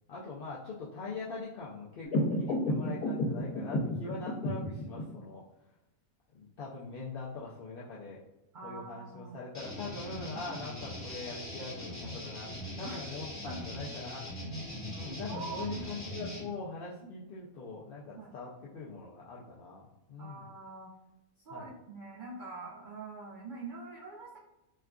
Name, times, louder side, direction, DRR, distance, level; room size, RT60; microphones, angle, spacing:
voice 1, 0.1-5.4 6.3-8.2 8.6-14.3 14.9-20.5 21.5-21.7, left 3 dB, 70° left, -6 dB, 0.5 m, -42 dB
sound 1, 2.0-5.0, left 1 dB, 85° left, 1.2 m, -31 dB
voice 2, 8.5-9.4 10.3-10.6 12.8-13.0 13.5-13.6 15.3-15.8 17.0-17.1 18.1-18.3 20.2-20.9 21.5-24.4, right 3 dB, 75° right, -3 dB, 0.4 m, -44 dB
sound 2, 9.5-16.4, left 1 dB, 15° left, 1.0 m, -41 dB
4.4 x 2.4 x 2.3 m, 0.96 s
omnidirectional pair, 1.5 m